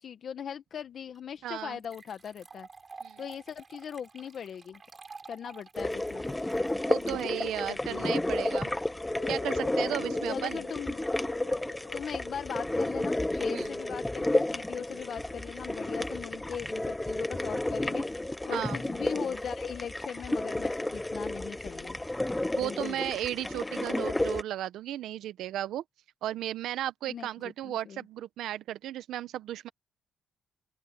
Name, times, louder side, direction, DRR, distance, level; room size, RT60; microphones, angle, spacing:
voice 1, 0.0-2.7 3.2-4.8 5.3-6.5 7.0-7.2 7.7-8.1 10.3-11.1 11.9-18.2 18.4-22.0 22.6-23.1 27.1-27.3 27.6-28.0, left 8 dB, 55° left, 1.2 m, -40 dB
sound 1, 1.1-1.2 1.8-8.1, right 4 dB, 30° right, 7.1 m, -50 dB
voice 2, 1.4-1.8 3.0-3.2 6.7-8.7 9.3-10.6 13.5-13.7 18.5-18.8 22.5-25.8 26.2-29.7, right 12 dB, 80° right, 0.9 m, -35 dB
sound 2, 5.7-24.4, left 1 dB, 10° left, 0.7 m, -32 dB
sound 3, 9.0-13.6, left 13 dB, 90° left, 2.1 m, -47 dB
open air
cardioid pair, 90°, 0 cm